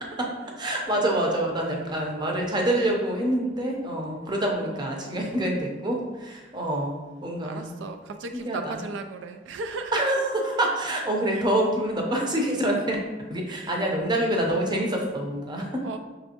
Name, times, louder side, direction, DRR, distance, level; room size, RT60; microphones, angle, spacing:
voice 1, 0.6-6.9 7.2-7.8 8.3-8.8 9.9-13.0 13.3-15.8, right 1 dB, 25° right, 1 dB, 0.6 m, -26 dB
voice 2, 4.7-5.4 6.5-6.6 7.4-10.0 10.5-10.6 11.3-11.5 12.6-12.7 13.5-13.9 15.5-16.0, right 3 dB, 85° right, 7 dB, 0.3 m, -37 dB
5.3 x 3.2 x 2.8 m, 1.2 s
head